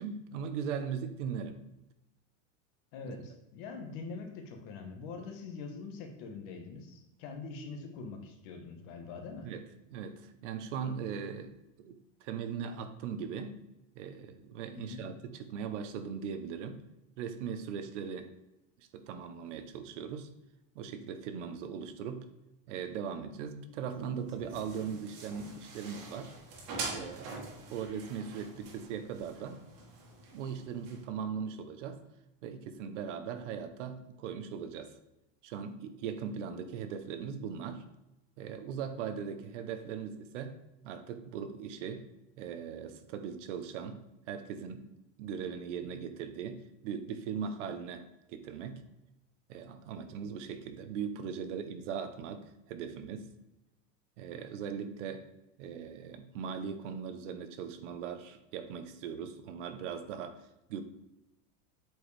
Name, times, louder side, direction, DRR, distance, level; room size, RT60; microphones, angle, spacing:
voice 1, 0.0-1.6 3.0-3.2 9.4-9.6 9.9-13.6 13.9-16.8 17.2-18.3 18.8-20.3 20.7-22.2 22.7-26.3 26.9-29.6 30.3-32.0 32.4-35.0 35.4-37.8 38.4-40.6 40.8-42.1 42.4-44.0 44.3-44.8 45.2-48.8 49.5-53.3 54.2-55.2 55.6-60.8, right 7 dB, 70° right, 9 dB, 0.8 m, -39 dB
voice 2, 2.9-9.5 14.7-15.1, left 4 dB, 45° left, 4 dB, 1.1 m, -44 dB
sound 1, 23.8-31.0, right 3 dB, 50° right, 1.7 m, -45 dB
7.9 x 4.6 x 3.2 m, 0.92 s
supercardioid pair, 180°, 38 cm